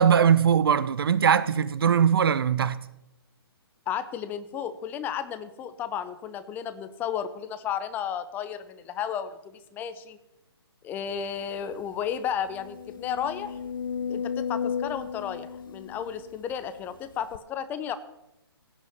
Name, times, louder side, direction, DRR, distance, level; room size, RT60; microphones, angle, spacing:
voice 1, 0.0-2.8, right 7 dB, 60° right, 0.9 m, -21 dB
voice 2, 3.9-10.2 10.8-13.6 14.1-18.0, left 8 dB, 15° left, 0.6 m, -33 dB
sound 1, 11.3-11.4 11.8-11.9 12.4-16.7 17.3-17.4, left 7 dB, 55° left, 0.6 m, -34 dB
16.5 x 5.6 x 9.6 m
hypercardioid pair, 150°, 13 cm